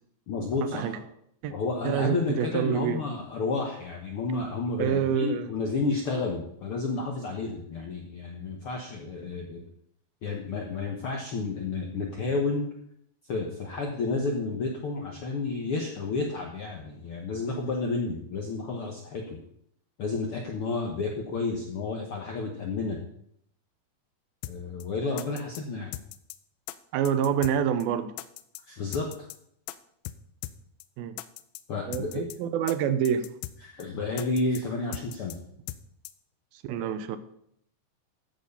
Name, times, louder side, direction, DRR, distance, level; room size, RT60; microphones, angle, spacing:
voice 1, 0.3-1.0 1.5-9.6 10.2-12.7 13.3-19.4 20.0-23.0 24.5-25.9 28.7-29.3 31.7-32.3 33.6-35.4, left 3 dB, 65° left, 1 dB, 1.4 m, -31 dB
voice 2, 1.8-3.0 4.8-5.5 26.9-28.1 31.0-31.2 31.9-33.3 36.6-37.2, right 8 dB, 80° right, 11 dB, 2.6 m, -27 dB
sound 1, 24.4-24.6 24.8-24.9 25.2-25.6 25.9-26.4 26.7-26.8 27.1-27.6 27.8-27.9 28.2-28.6 28.9-29.4 29.7-29.8 30.1-30.2 30.4-30.6 30.8-30.9 31.2-31.6 31.9-32.4 32.7-32.8 33.1-33.6 33.8-33.9 34.2-34.6 34.9-35.4 35.7-35.8 36.1-36.2, left 15 dB, 80° left, 2.3 m, -38 dB
14.5 x 6.7 x 5.4 m, 0.71 s
omnidirectional pair, 4.2 m